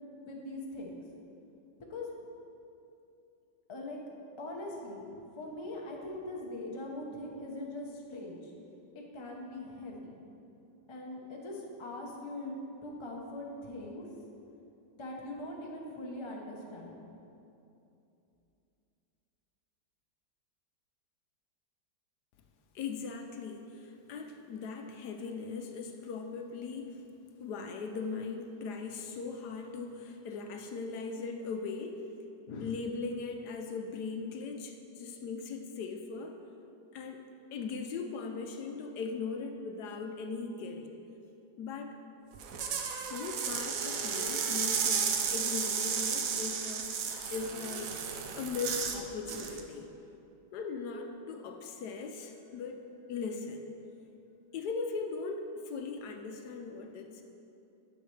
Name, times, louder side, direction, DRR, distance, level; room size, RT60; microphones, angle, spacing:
voice 1, 0.2-1.0 1.9-2.1 3.7-4.0 4.4-8.5 8.9-10.2 10.9-12.5 12.8-14.0 14.9-16.9, left 1 dB, 35° left, -1 dB, 0.4 m, -41 dB
voice 2, 22.7-27.0 27.4-32.0 32.5-36.4 36.9-40.9 41.6-42.0 43.0-48.0 48.4-49.9 50.5-53.7 54.5-57.2, left 4 dB, 75° left, 4 dB, 1.1 m, -39 dB
sound 1, 42.3-49.0 49.3-49.6, right 6 dB, 65° right, 0.9 m, -33 dB
9.8 x 6.4 x 3.2 m, 2.8 s
omnidirectional pair, 1.9 m